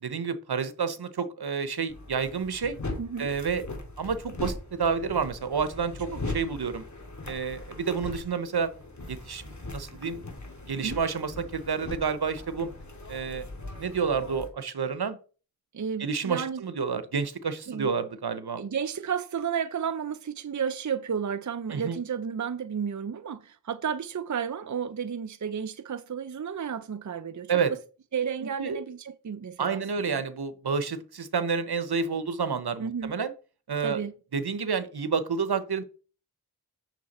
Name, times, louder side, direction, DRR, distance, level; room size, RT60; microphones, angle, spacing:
voice 1, 0.0-2.8 3.2-3.7 4.0-6.8 7.3-8.7 9.1-10.2 10.7-12.7 13.1-13.4 13.8-15.2 16.0-18.6 21.7-22.0 27.5-27.7 28.6-28.8 29.6-33.3 33.7-34.0 34.3-35.8, right 5 dB, 70° right, 1.0 m, -29 dB
sound 1, 1.9-14.5, left 2 dB, 45° left, 2.7 m, -40 dB
voice 2, 3.0-3.3 6.1-6.2 10.8-11.0 15.7-16.6 17.7-17.9 18.6-27.8 28.1-29.8 30.1-30.2 32.8-33.1 33.8-34.1, right 7 dB, 50° right, 0.6 m, -32 dB
9.2 x 6.7 x 4.2 m
cardioid pair, 45°, 39 cm